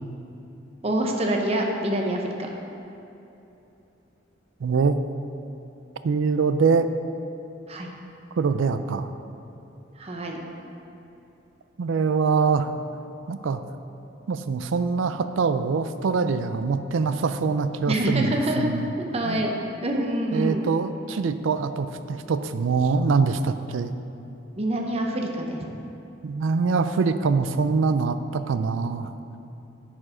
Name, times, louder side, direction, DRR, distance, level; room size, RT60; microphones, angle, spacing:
voice 1, 0.8-2.5 7.7-7.9 10.0-10.5 17.9-18.7 19.0-20.7 24.6-25.6, right 1 dB, 30° right, 1 dB, 0.8 m, -26 dB
voice 2, 4.6-5.0 6.0-6.9 8.4-9.1 11.8-12.7 13.3-13.6 14.3-18.9 19.3-19.5 20.3-24.0 26.2-29.1, right 4 dB, 80° right, 10 dB, 0.4 m, -24 dB
10.0 x 4.9 x 4.9 m, 2.8 s
head